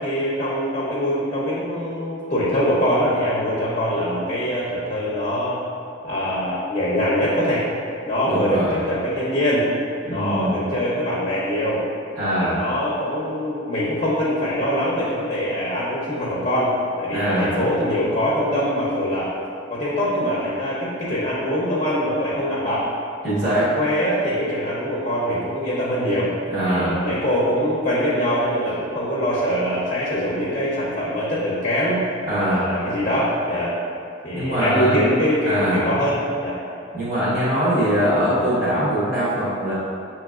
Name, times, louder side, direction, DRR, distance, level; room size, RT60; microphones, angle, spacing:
voice 1, 0.0-5.6 6.0-7.7 8.0-9.7 10.1-11.8 12.3-19.3 19.7-22.9 23.4-26.3 26.6-32.0 32.4-33.7 34.2-36.6, equal, 35° left, -8 dB, 0.7 m, -23 dB
voice 2, 8.2-8.8 10.0-10.5 12.2-12.6 17.1-17.5 23.2-23.7 26.5-27.0 32.3-32.7 34.3-35.0 35.4-35.9 36.9-39.7, equal, 50° right, -10 dB, 1.4 m, -22 dB
7.0 x 3.0 x 2.4 m, 2.6 s
head